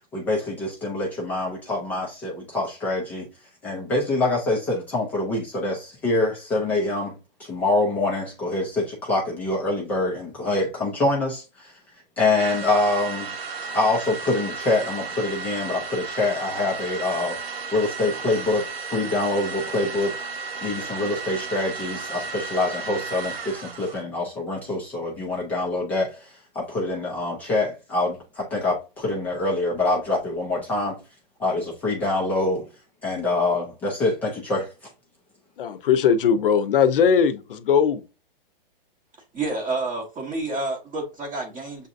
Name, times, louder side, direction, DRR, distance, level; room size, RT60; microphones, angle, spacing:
voice 1, 0.1-3.2 3.6-7.1 7.4-11.7 12.2-13.3 13.7-17.4 17.7-20.1 20.6-30.9 31.4-32.7 33.0-34.7, left 2 dB, 5° left, 0.4 m, -25 dB
sound 1, 12.4-24.0, right 5 dB, 85° right, 1.3 m, -34 dB
voice 2, 35.6-38.0, left 7 dB, 65° left, 0.8 m, -19 dB
voice 3, 39.3-41.9, right 2 dB, 10° right, 0.7 m, -29 dB
7.0 x 2.7 x 2.5 m
hypercardioid pair, 160°, 29 cm